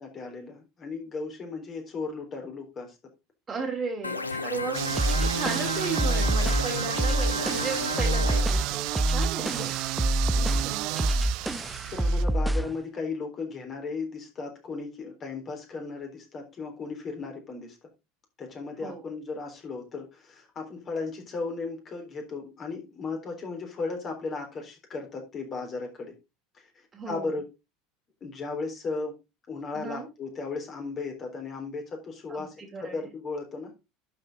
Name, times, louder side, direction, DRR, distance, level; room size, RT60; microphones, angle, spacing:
voice 1, 0.0-2.9 5.2-5.3 9.3-9.7 10.3-11.0 11.9-17.8 18.4-26.1 26.6-27.5 28.2-29.2 29.5-33.7, left 4 dB, 35° left, 3.8 m, -36 dB
voice 2, 3.5-4.8 5.3-9.6 10.6-11.0 18.8-19.1 26.9-27.3 29.7-30.1 32.3-33.0, right 4 dB, 25° right, 2.8 m, -35 dB
sound 1, 4.0-8.4, left 3 dB, 85° left, 0.7 m, -33 dB
sound 2, 4.7-12.2, right 20 dB, 55° right, 0.4 m, -32 dB
sound 3, 5.0-12.8, right 1 dB, 5° right, 0.8 m, -27 dB
12.0 x 5.7 x 3.9 m
figure-of-eight pair, 75°, 0 cm